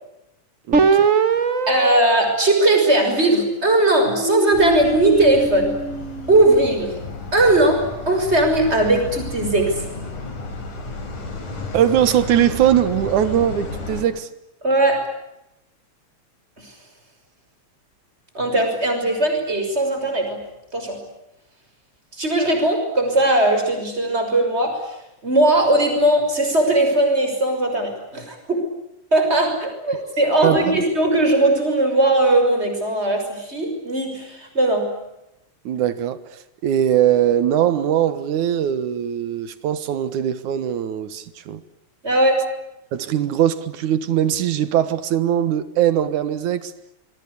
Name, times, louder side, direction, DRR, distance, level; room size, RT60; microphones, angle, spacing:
sound 1, 0.7-3.4 4.0-6.5, right 4 dB, 35° right, 1.4 m, -22 dB
voice 1, 0.7-1.1 11.7-14.3 30.4-30.8 35.7-36.2 36.6-41.6 42.9-46.7, right 10 dB, 75° right, 14 dB, 2.8 m, -20 dB
voice 2, 1.7-5.8 6.3-7.0 7.3-9.8 14.6-15.0 16.6-16.7 18.3-20.4 20.7-21.0 22.1-25.0 25.2-28.7 29.1-35.0 42.0-42.4, right 1 dB, 20° right, 5 dB, 6.3 m, -19 dB
sound 2, 4.5-14.0, left 3 dB, 75° left, 5.7 m, -33 dB
26.5 x 22.5 x 8.5 m, 0.87 s
omnidirectional pair, 3.5 m